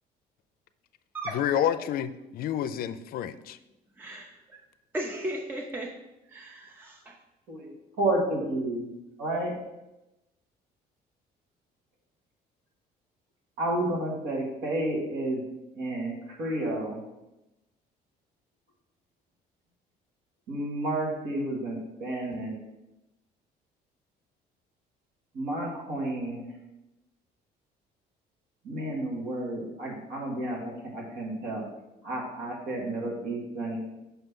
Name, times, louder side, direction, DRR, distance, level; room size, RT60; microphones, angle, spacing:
voice 1, 1.3-3.6, left 10 dB, 60° left, 12 dB, 0.4 m, -29 dB
voice 2, 4.0-4.6 4.9-6.0 6.3-7.2, right 1 dB, 10° right, 1 dB, 0.6 m, -36 dB
voice 3, 8.0-8.9 9.2-9.5 13.6-15.4 15.8-17.0 20.5-22.5 25.3-26.5 28.6-31.7 32.0-33.8, right 1 dB, 75° right, -2 dB, 1.8 m, -31 dB
5.7 x 5.6 x 3.7 m, 0.95 s
cardioid pair, 110°, 17 cm